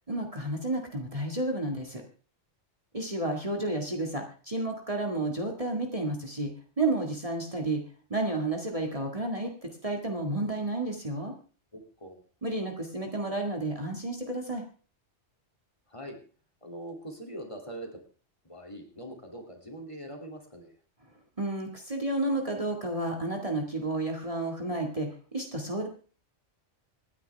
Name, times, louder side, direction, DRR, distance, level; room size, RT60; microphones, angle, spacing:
voice 1, 0.1-2.0 2.9-6.5 6.8-7.8 8.1-9.5 9.8-11.3 12.4-14.6 21.4-25.9, right 2 dB, 30° right, 2 dB, 2.1 m, -31 dB
voice 2, 11.7-12.2 15.9-16.2 16.6-18.0 18.4-20.7, right 1 dB, 25° left, 2 dB, 2.8 m, -42 dB
26.5 x 9.8 x 3.4 m, 0.38 s
omnidirectional pair, 1.2 m